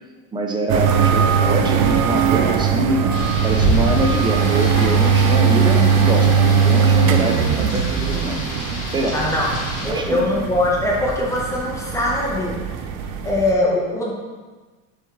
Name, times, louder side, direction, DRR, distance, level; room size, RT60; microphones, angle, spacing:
voice 1, 0.3-3.1 3.4-8.4 8.9-9.2 9.9-10.3, right 2 dB, 10° right, 2 dB, 0.3 m, -24 dB
sound 1, 0.7-13.5, right 6 dB, 70° right, 0.5 m, -19 dB
Rain, 3.1-9.9, equal, 40° left, 1.3 m, -28 dB
voice 2, 9.1-12.6 13.2-14.1, left 1 dB, 5° left, -3 dB, 0.8 m, -22 dB
4.1 x 3.2 x 3.5 m, 1.3 s
supercardioid pair, 115°, 41 cm